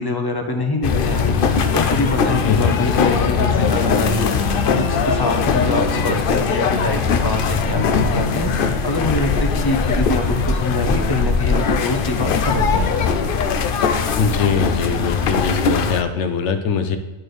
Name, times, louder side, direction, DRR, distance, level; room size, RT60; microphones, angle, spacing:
voice 1, 0.0-13.0 13.7-13.8, left 2 dB, 25° left, 4 dB, 0.7 m, -25 dB
sound 1, 0.8-16.0, left 5 dB, 60° left, 0.7 m, -20 dB
voice 2, 2.4-2.8 14.2-17.0, left 5 dB, 80° left, 8 dB, 1.0 m, -22 dB
10.5 x 4.4 x 3.2 m, 1.2 s
omnidirectional pair, 1.2 m